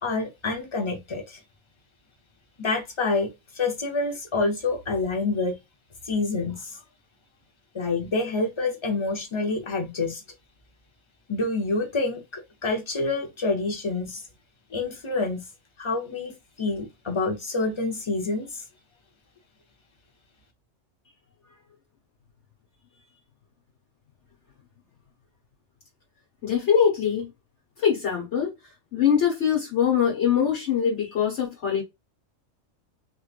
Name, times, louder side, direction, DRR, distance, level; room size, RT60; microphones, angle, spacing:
voice 1, 0.0-1.4 2.6-5.6 6.0-6.8 7.7-10.2 11.3-14.2 14.7-15.4 15.8-18.6, left 3 dB, 25° left, 0.8 m, -27 dB
voice 2, 26.4-27.3 27.8-28.5 28.9-31.8, left 8 dB, 60° left, 1.4 m, -23 dB
3.4 x 3.1 x 2.4 m
omnidirectional pair, 1.3 m